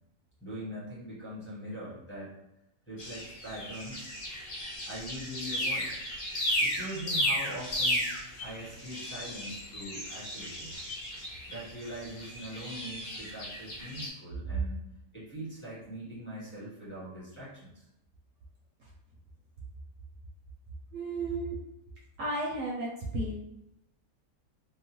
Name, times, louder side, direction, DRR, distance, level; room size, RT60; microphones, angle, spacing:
voice 1, 0.4-2.3 2.9-4.1 4.8-5.9 6.6-8.0 8.4-10.8 11.5-14.8 15.1-17.9, right 1 dB, 10° left, -10 dB, 0.8 m, -42 dB
sound 1, 3.0-14.1, equal, 85° left, 1.2 m, -34 dB
voice 2, 20.9-21.6 22.2-22.9 23.1-23.4, right 2 dB, 70° right, -4 dB, 0.8 m, -33 dB
2.9 x 2.0 x 2.9 m, 0.87 s
omnidirectional pair, 1.6 m